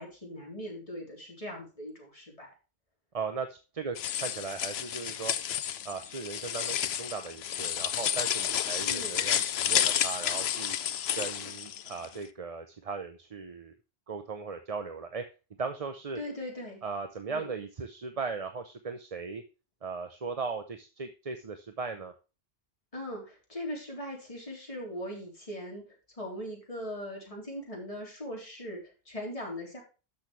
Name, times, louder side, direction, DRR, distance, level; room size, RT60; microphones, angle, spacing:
voice 1, 0.0-2.5 8.7-9.2 16.2-16.8 17.3-17.5 22.9-29.8, equal, 35° left, -1 dB, 3.8 m, -40 dB
voice 2, 3.1-5.3 5.8-10.8 11.1-13.7 14.1-15.2 15.6-16.2 16.8-19.4 19.8-22.1, right 5 dB, 40° right, 8 dB, 0.8 m, -37 dB
sound 1, 4.0-12.1, left 10 dB, 85° left, 0.9 m, -31 dB
12.5 x 6.5 x 3.3 m, 0.31 s
omnidirectional pair, 1.0 m